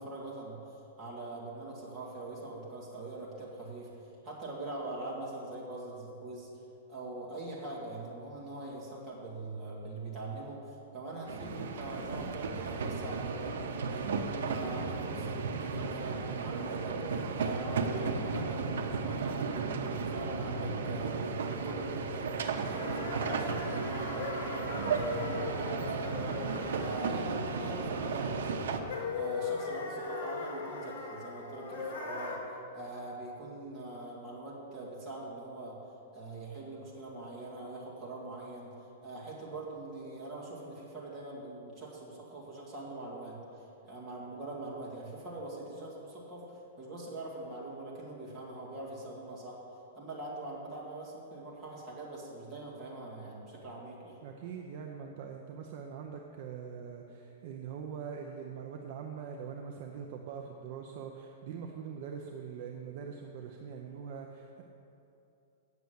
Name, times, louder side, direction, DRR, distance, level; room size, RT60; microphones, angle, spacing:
voice 1, 0.0-6.5 6.9-22.3 22.6-32.4 32.7-35.8 36.1-38.8 39.0-49.6 49.9-54.2, right 2 dB, 15° right, -6 dB, 2.1 m, -43 dB
sound 1, 11.3-28.8, right 4 dB, 85° right, 0.8 m, -34 dB
sound 2, 22.1-32.4, left 4 dB, 60° left, 2.0 m, -39 dB
voice 2, 54.2-64.6, right 7 dB, 40° right, 2 dB, 0.6 m, -43 dB
8.3 x 6.8 x 7.9 m, 2.8 s
supercardioid pair, 175°, 0 cm